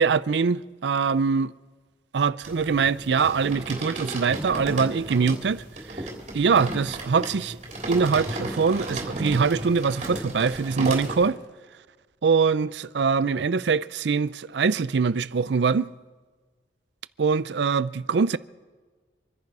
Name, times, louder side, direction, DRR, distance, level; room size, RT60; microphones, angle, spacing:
voice 1, 0.0-1.5 2.1-6.1 6.3-7.6 7.9-11.4 12.2-15.9 17.2-18.4, right 5 dB, 75° right, 0.5 m, -23 dB
sound 1, 2.4-11.3, right 1 dB, 40° right, 3.3 m, -34 dB
26.5 x 10.5 x 4.8 m
head